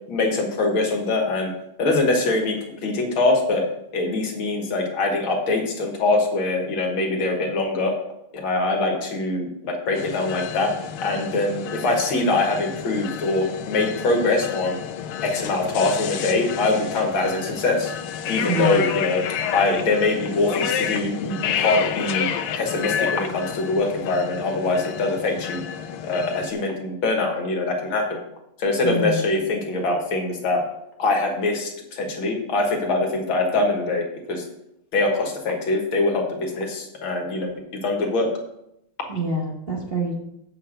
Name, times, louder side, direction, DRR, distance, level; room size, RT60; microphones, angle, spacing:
voice 1, 0.1-1.5 1.8-3.7 3.9-7.9 8.3-10.7 11.0-14.8 15.2-17.9 18.3-19.2 19.5-22.3 22.5-25.6 26.0-28.2 28.6-30.6 31.0-34.4 34.9-38.3, left 2 dB, 70° left, 2 dB, 2.3 m, -23 dB
sound 1, 10.0-26.5, left 8 dB, 85° left, 1.6 m, -30 dB
voice 2, 18.5-18.9 28.8-29.2 39.1-40.2, right 1 dB, 30° right, -2 dB, 1.2 m, -25 dB
8.2 x 5.8 x 6.4 m, 0.83 s
omnidirectional pair, 2.4 m